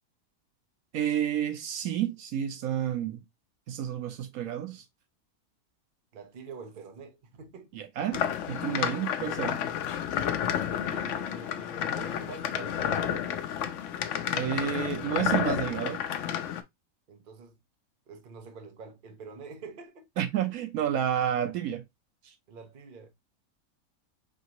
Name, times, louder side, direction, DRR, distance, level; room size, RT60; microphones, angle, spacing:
voice 1, 0.9-3.2 3.7-4.8 7.7-9.6 14.3-16.0 20.2-21.8, right 10 dB, 80° right, 1.2 m, -30 dB
voice 2, 6.1-7.8 10.6-13.4 17.1-17.6 18.1-20.1 22.5-23.1, right 4 dB, 45° right, 0.9 m, -46 dB
sound 1, 8.1-16.6, left 9 dB, 65° left, 0.9 m, -31 dB
5.4 x 2.9 x 2.8 m
omnidirectional pair, 1.5 m